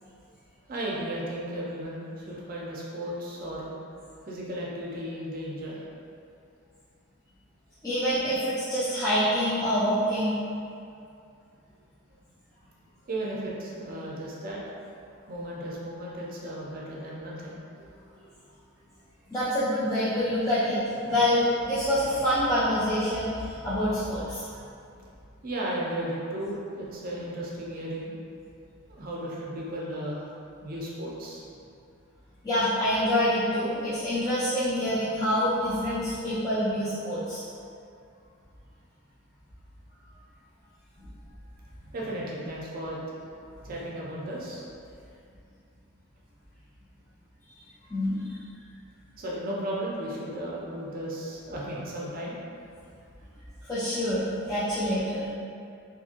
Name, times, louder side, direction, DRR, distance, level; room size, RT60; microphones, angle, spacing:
voice 1, 0.7-3.7 4.3-5.8 13.1-14.6 15.3-17.6 24.5-24.7 25.4-28.1 28.9-30.2 30.6-31.4 41.9-43.2 43.6-44.6 49.2-52.4, right 1 dB, 40° right, -5 dB, 0.5 m, -35 dB
voice 2, 7.8-10.4 19.3-20.8 21.1-24.5 32.4-37.4 47.9-48.2 53.7-55.3, equal, 15° left, -14 dB, 0.4 m, -26 dB
2.6 x 2.6 x 2.5 m, 2.5 s
head